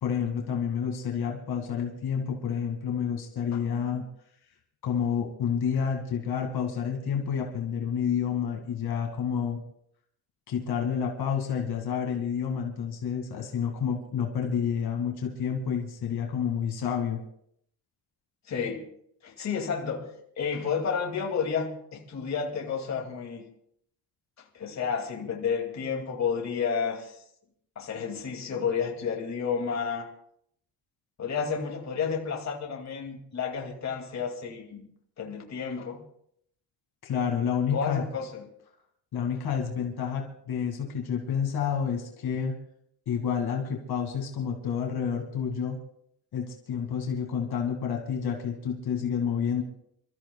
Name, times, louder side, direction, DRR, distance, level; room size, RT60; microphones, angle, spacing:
voice 1, 0.0-4.1 4.8-9.6 10.5-17.2 37.0-38.0 39.1-42.6 43.1-45.8 46.3-49.6, left 7 dB, 60° left, 1 dB, 2.3 m, -29 dB
voice 2, 18.5-18.9 19.2-20.1 20.4-23.4 24.5-27.2 27.8-30.1 31.2-34.8 35.2-36.0 37.7-38.4, left 6 dB, 40° left, 0 dB, 2.5 m, -31 dB
28.5 x 14.0 x 2.3 m, 0.70 s
cardioid pair, 140°, 42 cm